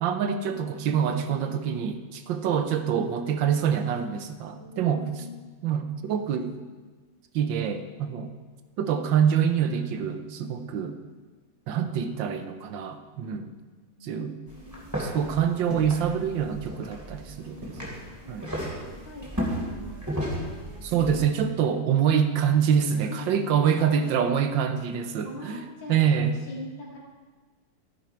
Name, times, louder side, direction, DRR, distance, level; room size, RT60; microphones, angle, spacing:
voice 1, 0.0-5.1 5.6-6.5 7.3-8.3 8.8-11.0 11.7-13.5 14.0-14.4 15.0-17.7 18.3-18.5 20.8-25.6 25.9-26.4, right 8 dB, 85° right, 8 dB, 1.5 m, -25 dB
voice 2, 4.5-5.3 14.0-15.3 17.1-20.8 22.9-23.5 24.9-25.9 26.5-27.0, left 1 dB, 85° left, -3 dB, 3.1 m, -45 dB
sound 1, 14.5-21.2, equal, 10° right, 2.6 m, -34 dB
12.5 x 10.0 x 4.4 m, 1.4 s
omnidirectional pair, 2.0 m